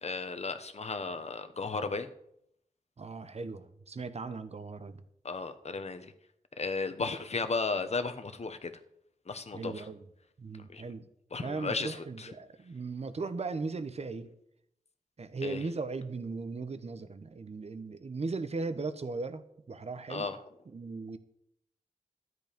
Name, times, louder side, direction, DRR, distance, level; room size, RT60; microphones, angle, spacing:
voice 1, 0.0-2.1 5.2-6.1 6.6-8.7 9.3-9.9 10.7-10.8 11.3-12.3 15.4-15.6 20.1-20.4, left 4 dB, 50° left, 9 dB, 1.1 m, -34 dB
voice 2, 3.0-5.0 7.0-7.1 9.5-10.0 10.4-11.1 11.4-14.3 15.2-20.3 20.7-21.2, right 3 dB, 50° right, 11 dB, 1.0 m, -38 dB
13.0 x 9.5 x 5.2 m, 0.74 s
wide cardioid pair, 105°, 14 cm